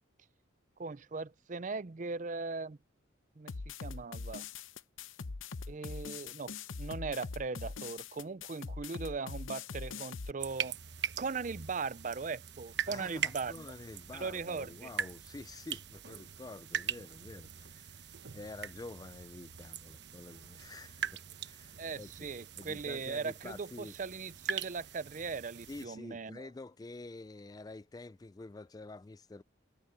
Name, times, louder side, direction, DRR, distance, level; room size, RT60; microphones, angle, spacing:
voice 1, 0.8-2.8 3.4-3.5 3.8-4.4 5.7-6.5 6.8-10.8 11.2-13.7 14.1-14.9 21.8-26.5, right 4 dB, 40° right, 0.5 m, -39 dB
sound 1, 3.5-10.3, left 4 dB, 80° left, 0.8 m, -42 dB
sound 2, 10.4-25.9, right 8 dB, 55° right, 1.1 m, -42 dB
voice 2, 12.9-22.1 22.6-23.9 25.7-29.4, left 2 dB, 20° left, 0.3 m, -48 dB
head